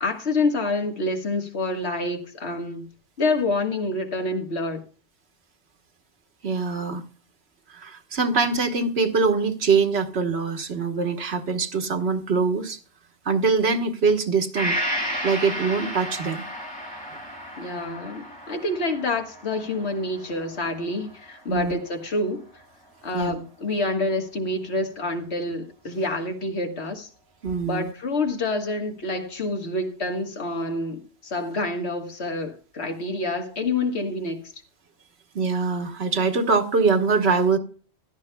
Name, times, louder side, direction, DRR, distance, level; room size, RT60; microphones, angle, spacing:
voice 1, 0.0-2.9 3.2-4.8 17.6-22.6 23.0-27.1 27.6-34.5, left 2 dB, 80° left, 1.8 m, -27 dB
voice 2, 6.4-7.0 7.7-12.8 13.2-14.8 15.2-16.4 21.5-21.8 23.1-23.3 27.4-27.9 35.3-37.6, right 4 dB, 75° right, 1.5 m, -23 dB
Gong, 14.6-22.2 22.6-22.7, equal, 5° left, 2.2 m, -33 dB
16.0 x 11.5 x 2.3 m
omnidirectional pair, 1.1 m